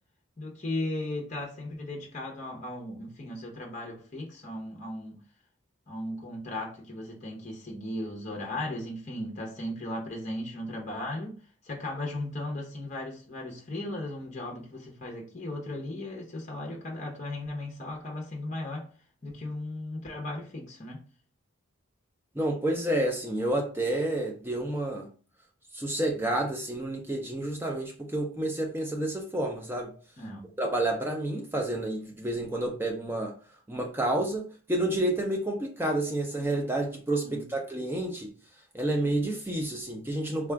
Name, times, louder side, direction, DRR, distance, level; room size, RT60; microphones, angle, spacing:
voice 1, 0.4-5.2 5.9-11.4 11.6-18.9 19.2-21.1 30.2-30.5 37.2-37.5, left 1 dB, 35° left, 0.8 m, -36 dB
voice 2, 22.4-25.1 25.7-29.9 30.6-33.3 33.7-38.3 38.7-40.5, right 1 dB, 10° right, 0.4 m, -29 dB
3.6 x 2.3 x 3.3 m
head